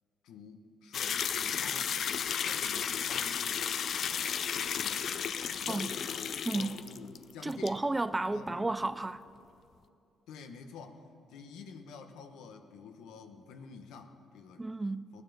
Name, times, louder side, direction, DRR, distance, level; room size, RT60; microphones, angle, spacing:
voice 1, 0.2-2.0 2.4-3.7 4.1-7.8 8.3-8.8 10.3-11.0 11.3-14.7 15.1-15.2, left 5 dB, 90° left, 1.1 m, -49 dB
sound 1, 0.9-7.2 7.5-7.7, left 8 dB, 60° left, 0.5 m, -33 dB
voice 2, 6.5-6.8 7.4-9.2 14.6-15.1, right 2 dB, 15° right, 0.4 m, -32 dB
18.0 x 9.6 x 7.2 m
cardioid pair, 90°, 0 cm